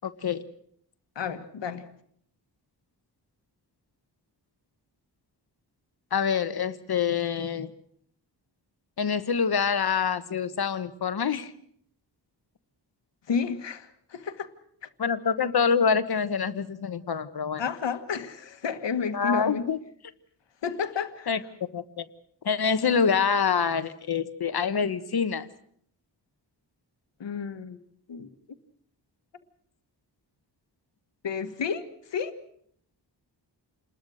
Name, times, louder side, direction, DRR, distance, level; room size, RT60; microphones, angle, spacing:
voice 1, 0.0-0.4 6.1-7.7 9.0-11.5 15.0-17.6 19.1-19.8 21.3-21.4 21.7-22.0 22.4-25.5, left 6 dB, 60° left, 1.3 m, -26 dB
voice 2, 1.2-1.9 13.3-14.5 14.8-14.9 17.6-19.7 20.6-21.3 27.2-27.8 28.1-28.3 31.2-32.4, left 6 dB, 80° left, 1.7 m, -31 dB
28.5 x 21.0 x 6.5 m
wide cardioid pair, 145°, 42 cm